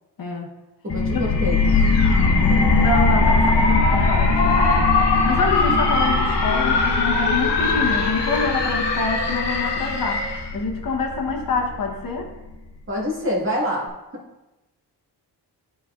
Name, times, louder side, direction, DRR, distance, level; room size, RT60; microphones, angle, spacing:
voice 1, 0.2-0.5 1.1-1.3 2.2-5.0 5.2-12.3, left 3 dB, 55° left, 2 dB, 1.0 m, -26 dB
voice 2, 0.8-1.6 12.9-13.9, left 1 dB, 30° right, -3 dB, 1.6 m, -25 dB
sound 1, 0.9-12.3, left 3 dB, 35° left, 0.7 m, -22 dB
sound 2, 1.7-10.5, left 3 dB, 85° left, 1.2 m, -23 dB
11.5 x 4.2 x 2.4 m, 1.0 s
wide cardioid pair, 145°, 41 cm